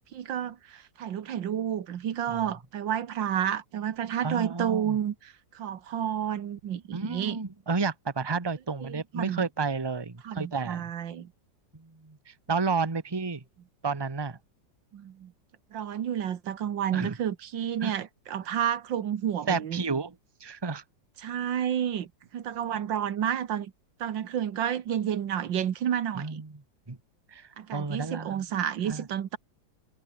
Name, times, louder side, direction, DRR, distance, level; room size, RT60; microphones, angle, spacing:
voice 1, 0.0-5.1 5.5-7.4 8.8-9.5 10.2-11.3 14.9-15.3 15.7-19.8 21.2-23.7 24.0-26.4 27.6-29.4, right 9 dB, 90° right, 2.0 m, -30 dB
voice 2, 4.2-5.0 6.9-10.9 11.7-13.4 13.8-14.4 16.9-17.2 17.8-17.9 19.5-20.1 20.4-20.8 26.1-26.6 26.9-27.0 27.3-28.4 28.9-29.1, right 4 dB, 15° right, 1.2 m, -31 dB
omnidirectional pair, 2.0 m